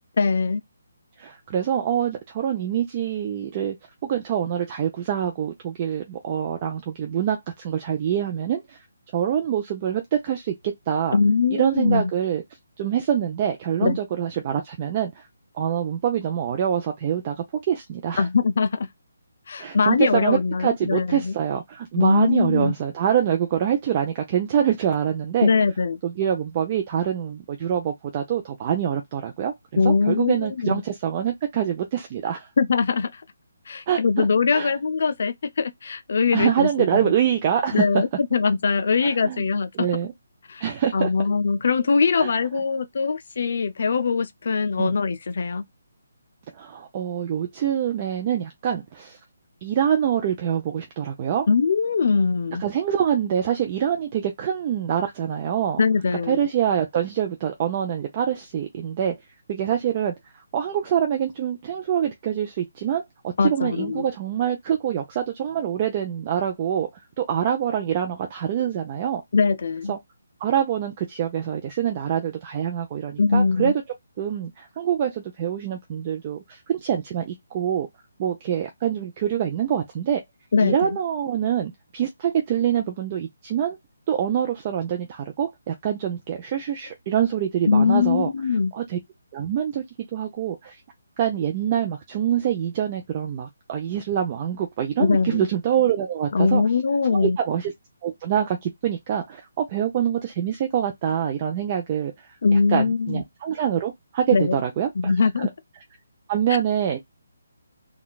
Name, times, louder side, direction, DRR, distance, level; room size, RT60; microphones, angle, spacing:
voice 1, 0.2-0.6 11.1-12.1 13.8-14.0 18.2-18.9 19.5-21.3 22.0-22.7 25.4-26.0 29.8-30.8 32.6-33.2 33.7-37.1 37.7-39.9 40.5-40.6 40.9-45.6 51.5-52.6 55.8-56.4 63.4-64.0 69.3-69.9 73.2-73.7 80.5-81.0 87.7-88.7 95.0-95.5 96.3-97.4 102.4-103.2 104.3-104.6 105.0-105.5 106.5-106.6, left 5 dB, 55° left, 0.4 m, -22 dB
voice 2, 1.2-3.8 4.0-8.8 9.1-11.2 11.5-12.4 12.8-15.2 15.6-18.3 19.6-25.5 26.0-32.5 33.9-34.3 34.5-34.7 36.3-38.0 39.0-39.4 39.8-40.1 40.6-41.1 42.2-42.6 44.8-44.9 46.5-49.2 49.6-51.5 52.6-55.8 56.3-59.1 59.5-60.1 60.5-66.9 67.2-69.2 69.9-70.0 70.4-73.7 74.2-77.9 78.2-80.2 80.6-83.8 84.1-88.3 88.7-89.0 89.3-89.8 90.1-90.8 91.2-96.6 97.2-97.7 98.0-102.3 102.7-105.5 106.3-107.0, right 9 dB, 30° right, 0.5 m, -25 dB
3.7 x 2.3 x 2.3 m
hypercardioid pair, 160°, 0 cm